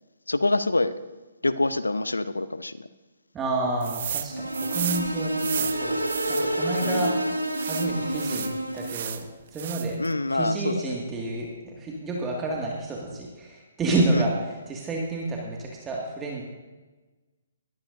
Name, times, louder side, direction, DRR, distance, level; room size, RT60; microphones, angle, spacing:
voice 1, 0.3-0.9 1.4-2.9 6.8-7.2 10.0-11.0 14.1-14.3, left 2 dB, 80° left, 14 dB, 0.7 m, -26 dB
voice 2, 3.3-6.0 6.3-7.1 7.7-9.2 9.5-10.0 10.3-16.4, right 2 dB, 15° right, -2 dB, 2.0 m, -29 dB
sound 1, 3.8-4.3 4.5-7.1 7.5-9.2 9.5-10.1, right 9 dB, 45° right, 0.9 m, -33 dB
sound 2, 4.3-9.1, right 1 dB, 90° right, 1.6 m, -28 dB
21.0 x 14.5 x 2.6 m, 1.2 s
figure-of-eight pair, 130°, 0 cm